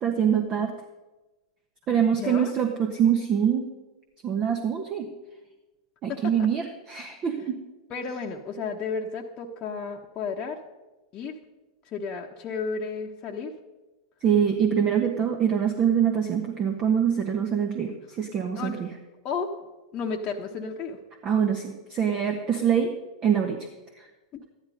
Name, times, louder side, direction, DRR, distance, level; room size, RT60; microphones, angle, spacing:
voice 1, 0.0-0.7 1.9-3.7 4.2-5.1 6.0-7.6 14.2-18.9 21.2-22.9 23.2-23.7 24.0-24.1, right 8 dB, 35° right, 4 dB, 1.3 m, -24 dB
voice 2, 1.9-2.5 6.1-6.5 7.9-10.6 11.1-11.4 11.9-13.5 18.6-18.8 19.2-19.6 19.9-21.0 24.3-24.4, left 5 dB, 35° left, -1 dB, 1.2 m, -33 dB
13.5 x 11.5 x 5.3 m, 1.1 s
figure-of-eight pair, 95°, 2 cm